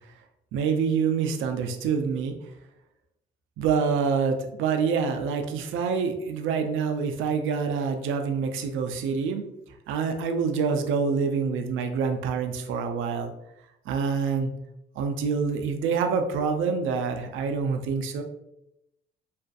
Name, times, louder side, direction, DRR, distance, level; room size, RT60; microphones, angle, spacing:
voice 1, 0.5-2.4 3.6-9.4 9.9-13.3 13.9-14.5 15.0-18.2, right 5 dB, 80° right, 5 dB, 0.4 m, -26 dB
2.4 x 2.4 x 2.3 m, 0.85 s
cardioid pair, 90°, 20 cm